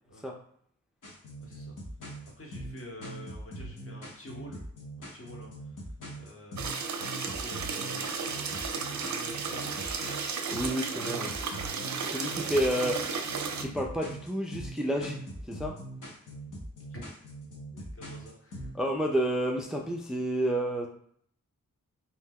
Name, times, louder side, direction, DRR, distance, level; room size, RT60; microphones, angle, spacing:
sound 1, 1.0-18.7, right 1 dB, 70° left, 1.0 m, -42 dB
voice 1, 1.4-1.8 2.3-4.6 5.0-6.8 7.1-9.8 12.2-12.4 16.9-17.0 17.7-18.8, left 1 dB, 45° left, -1 dB, 1.1 m, -48 dB
sound 2, 6.6-13.6, right 5 dB, 60° right, 0.5 m, -34 dB
voice 2, 10.5-11.3 12.1-12.9 13.6-15.2 15.5-15.8 18.7-20.9, right 1 dB, ahead, 0 dB, 0.4 m, -30 dB
2.7 x 2.1 x 3.6 m, 0.64 s
cardioid pair, 40°, 33 cm